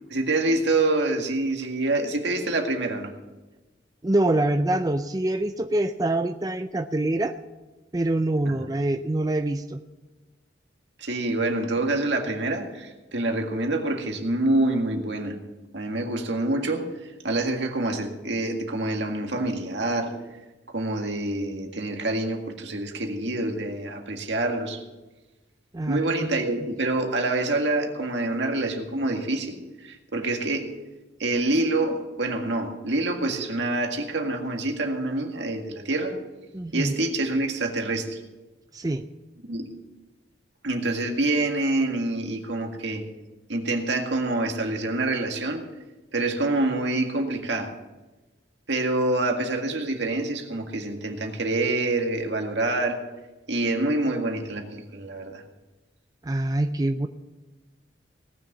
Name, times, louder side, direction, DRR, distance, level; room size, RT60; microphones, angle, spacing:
voice 1, 0.1-3.1 8.5-8.6 11.0-15.3 15.7-20.1 20.7-24.8 25.9-30.7 31.2-36.1 36.7-38.2 39.5-39.7 40.6-43.0 43.5-45.6 46.1-47.7 48.7-53.0 53.5-55.4, right 2 dB, 75° right, 3 dB, 1.9 m, -26 dB
voice 2, 4.0-7.4 7.9-9.8 25.7-26.4 36.5-36.9 38.7-39.1 56.2-57.1, right 1 dB, 20° right, 8 dB, 0.4 m, -25 dB
18.0 x 6.7 x 7.3 m, 1.1 s
head